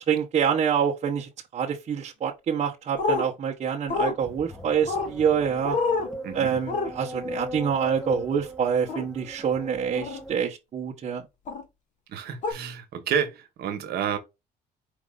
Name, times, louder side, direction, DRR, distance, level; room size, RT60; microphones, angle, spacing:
voice 1, 0.1-5.8 6.3-11.2, right 7 dB, 45° right, 1.0 m, -26 dB
sound 1, 3.0-3.2 3.9-4.1 4.9-5.1 5.6-6.1 6.7-6.9 8.9-9.0 9.9-10.2 11.5-11.6 12.4-12.5, left 3 dB, 50° left, 1.3 m, -26 dB
sound 2, 4.2-10.4, left 1 dB, 5° left, 1.0 m, -39 dB
voice 2, 6.2-6.5 12.1-14.2, right 8 dB, 70° right, 1.3 m, -29 dB
5.1 x 2.7 x 3.6 m
cardioid pair, 110°, 17 cm